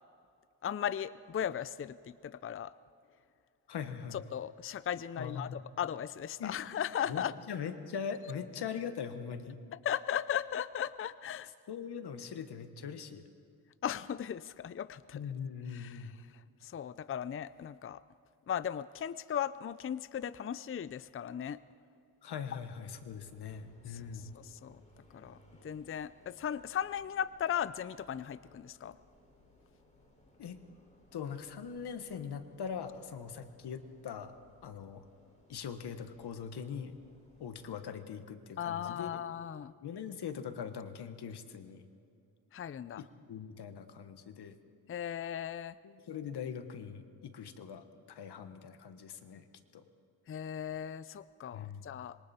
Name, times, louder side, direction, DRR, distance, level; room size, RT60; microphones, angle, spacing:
voice 1, 0.6-2.7 4.1-7.3 9.8-11.5 13.8-15.2 15.7-16.1 16.6-18.0 18.5-21.6 23.9-24.8 25.1-25.4 25.6-29.0 38.6-39.7 42.5-43.0 44.9-45.8 50.3-52.2, left 9 dB, 35° left, 16 dB, 0.5 m, -37 dB
voice 2, 3.7-4.2 5.2-5.6 6.4-6.6 7.1-9.6 11.7-13.2 15.1-16.2 22.2-24.3 30.4-30.6 31.1-34.3 34.6-35.0 35.5-36.9 37.4-39.2 39.8-41.9 43.0-44.6 45.8-49.4 49.7-49.8 51.5-51.9, left 7 dB, 80° left, 9 dB, 1.5 m, -41 dB
sound 1, 22.8-37.8, left 1 dB, 20° left, 5.6 m, -64 dB
26.0 x 23.0 x 4.3 m, 2.6 s
cardioid pair, 75°, 39 cm